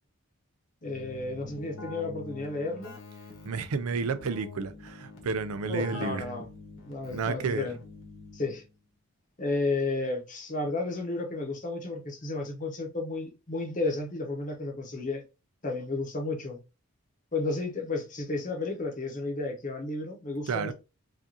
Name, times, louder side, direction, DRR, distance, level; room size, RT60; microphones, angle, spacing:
Keyboard (musical), 0.8-8.7, left 4 dB, 70° left, 1.2 m, -45 dB
voice 1, 0.8-2.9 5.7-6.5 6.9-7.8 8.3-8.6 9.4-15.2 15.6-16.6 17.3-20.7, left 3 dB, 35° left, 0.8 m, -32 dB
voice 2, 3.4-6.2 7.1-7.7 20.5-20.7, right 5 dB, 90° right, 0.5 m, -31 dB
4.8 x 2.5 x 2.7 m
head